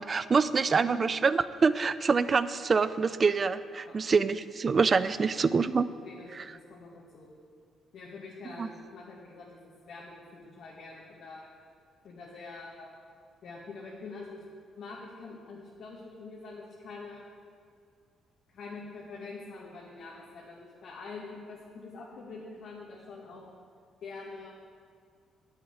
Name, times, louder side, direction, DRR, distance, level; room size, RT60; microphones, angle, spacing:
voice 1, 0.0-5.9 6.3-6.4 8.6-8.7, right 5 dB, 40° right, 14 dB, 0.5 m, -26 dB
voice 2, 0.7-1.0 3.9-4.0 6.0-7.3 7.9-11.5 12.0-13.0 13.4-14.4 14.8-17.3 18.5-23.4 24.0-24.5, left 3 dB, 70° left, -5 dB, 2.1 m, -45 dB
9.8 x 8.0 x 9.2 m, 2.1 s
cardioid pair, 90°, 0 cm